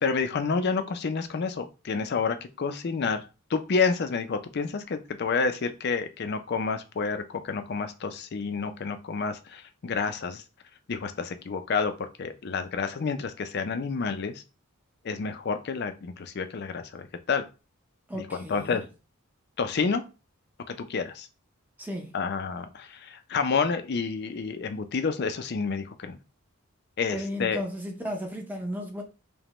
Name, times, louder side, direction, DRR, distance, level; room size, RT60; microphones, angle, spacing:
voice 1, 0.0-3.2 3.5-10.4 10.9-14.4 15.0-17.5 18.1-18.8 19.6-20.0 20.7-21.3 22.1-26.2 27.0-27.6, left 5 dB, 50° left, 0.4 m, -29 dB
voice 2, 18.1-18.9 21.8-22.2 27.1-29.0, equal, 10° right, 0.6 m, -34 dB
5.0 x 2.1 x 2.9 m
head